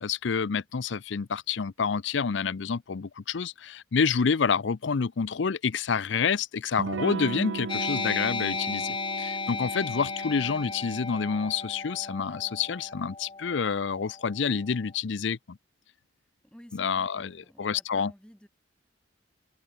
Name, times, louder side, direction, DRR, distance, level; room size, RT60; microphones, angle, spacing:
voice 1, 0.0-15.6 16.7-18.1, left 6 dB, 70° left, 0.5 m, -28 dB
Electric guitar / Strum, 6.8-12.2, right 5 dB, 70° right, 0.5 m, -37 dB
sound 1, 7.7-14.8, left 4 dB, 25° left, 1.5 m, -35 dB
voice 2, 16.4-18.5, equal, 5° left, 2.9 m, -52 dB
head